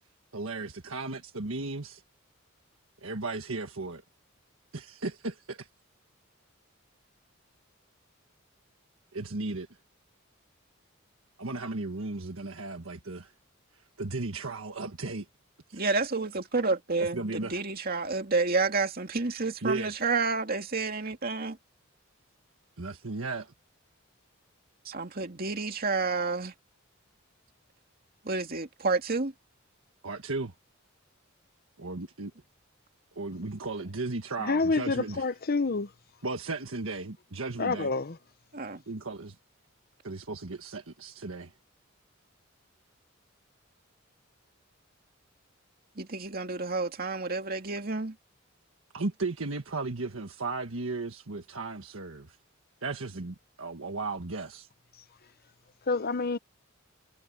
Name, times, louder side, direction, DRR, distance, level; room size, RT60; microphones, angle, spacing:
voice 1, 0.3-2.0 3.0-4.0 4.7-5.7 9.1-9.7 11.4-13.3 14.0-15.2 15.7-15.9 17.0-17.6 19.6-19.9 22.8-23.5 30.0-30.5 31.8-32.3 33.1-35.4 36.2-37.9 38.9-39.3 40.0-41.5 48.9-52.4 52.8-54.7, right 3 dB, 80° right, 1.5 m, -35 dB
voice 2, 15.7-21.6 24.9-26.5 28.2-29.3 38.5-38.8 46.0-48.1, right 3 dB, 45° right, 2.4 m, -30 dB
voice 3, 34.5-35.9 37.6-38.1 55.9-56.4, left 3 dB, 50° left, 0.8 m, -27 dB
head